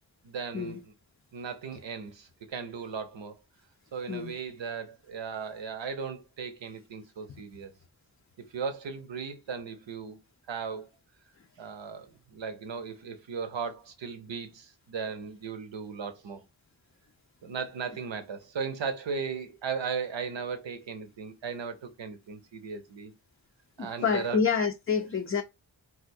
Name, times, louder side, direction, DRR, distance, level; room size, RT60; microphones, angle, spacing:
voice 1, 0.2-0.8 1.3-3.3 3.9-7.7 8.5-10.2 10.5-10.9 11.6-16.4 17.4-23.1 23.8-24.4, right 5 dB, 85° right, 0.7 m, -37 dB
voice 2, 23.8-25.4, left 6 dB, 30° left, 0.4 m, -28 dB
3.5 x 2.4 x 2.6 m
cardioid pair, 40°, 44 cm